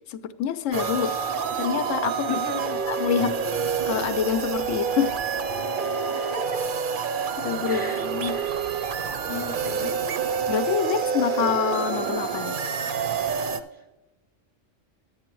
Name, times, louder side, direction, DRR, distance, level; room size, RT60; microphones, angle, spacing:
voice 1, 0.1-1.2 1.6-2.4 2.9-3.4 3.9-5.1 7.4-8.4 10.5-12.6, left 9 dB, 85° left, 12 dB, 0.9 m, -26 dB
sound 1, 0.7-13.6, right 6 dB, 55° right, 0.6 m, -27 dB
voice 2, 2.3-2.8 6.1-6.6 7.7-8.5 9.3-9.9 13.7-13.8, left 4 dB, 10° left, 4 dB, 0.6 m, -36 dB
12.0 x 8.8 x 3.0 m, 1.1 s
omnidirectional pair, 1.3 m